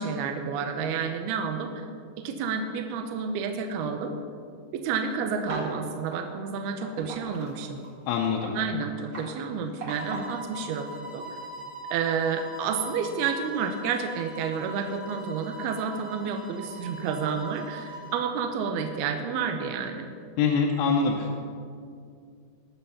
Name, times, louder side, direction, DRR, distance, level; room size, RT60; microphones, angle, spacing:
voice 1, 0.0-1.8 2.2-4.2 4.7-7.8 8.6-10.9 11.1-11.4 11.9-20.1, right 6 dB, 75° right, 5 dB, 2.6 m, -30 dB
sound 1, 5.4-5.8 6.1-6.2 6.8-10.4, right 2 dB, 40° right, 2.5 m, -38 dB
voice 2, 8.1-8.5 20.4-21.4, left 5 dB, 80° left, -1 dB, 2.9 m, -24 dB
sound 2, 9.9-18.3, equal, 20° left, 1.1 m, -41 dB
20.0 x 6.8 x 5.7 m, 2.3 s
omnidirectional pair, 4.8 m